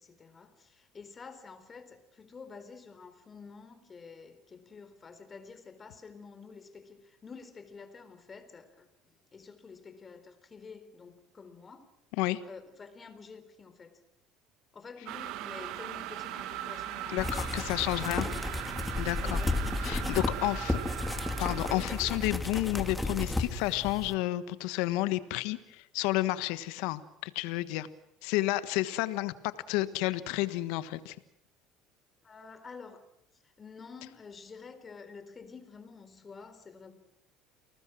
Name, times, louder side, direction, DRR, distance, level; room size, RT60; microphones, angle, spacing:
voice 1, 0.0-11.9 12.5-14.0 14.7-18.6 19.2-20.0 20.4-20.7 21.6-22.1 32.2-33.1 33.3-36.9, left 5 dB, 30° left, 4.1 m, -49 dB
sound 1, 15.1-22.4, right 13 dB, 65° right, 1.7 m, -40 dB
voice 2, 17.1-18.3 19.0-19.4 19.8-20.8 21.4-27.9 28.2-31.1, left 17 dB, 75° left, 1.4 m, -31 dB
sound 2, 17.2-24.1, left 2 dB, 10° left, 2.9 m, -33 dB
29.5 x 19.5 x 6.3 m
supercardioid pair, 85°, 0 cm